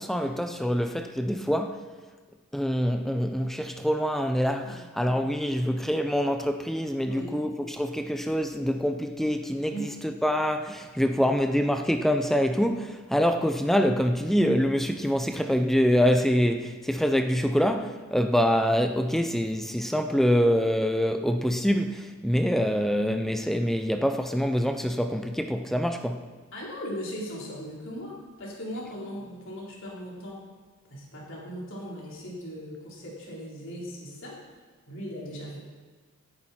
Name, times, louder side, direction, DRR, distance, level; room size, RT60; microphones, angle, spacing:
voice 1, 0.0-1.8 2.5-26.2, equal, ahead, 6 dB, 0.5 m, -25 dB
voice 2, 7.0-7.4 9.7-9.9 26.5-30.5 30.9-34.4 34.9-35.6, equal, 60° left, -4 dB, 4.0 m, -38 dB
17.5 x 10.5 x 4.3 m, 1.4 s
head